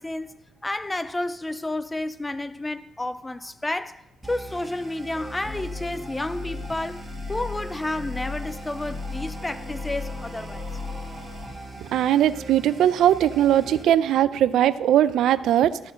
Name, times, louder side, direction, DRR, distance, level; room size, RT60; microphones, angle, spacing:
voice 1, 0.0-10.7, left 2 dB, 10° left, 0.3 m, -31 dB
sound 1, 4.2-13.8, left 2 dB, 5° right, 1.9 m, -36 dB
voice 2, 11.8-15.9, right 11 dB, 75° right, 0.4 m, -20 dB
13.0 x 4.5 x 6.3 m
cardioid pair, 155°, 0 cm